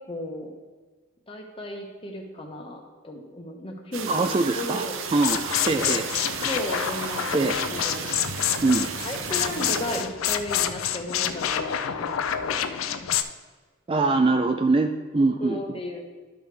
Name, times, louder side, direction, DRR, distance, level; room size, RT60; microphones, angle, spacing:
voice 1, 0.1-0.5 1.3-5.0 5.5-6.1 6.4-8.1 9.0-13.1 15.4-16.0, left 1 dB, 25° left, 2 dB, 1.0 m, -35 dB
sound 1, 3.9-10.0, right 6 dB, 70° right, 0.6 m, -34 dB
voice 2, 4.1-4.8 5.1-6.1 7.3-7.5 8.6-8.9 13.9-15.6, right 3 dB, 25° right, 5 dB, 0.3 m, -23 dB
sound 2, 5.1-13.2, left 9 dB, 75° left, 0.4 m, -28 dB
12.5 x 5.0 x 3.4 m, 1.4 s
head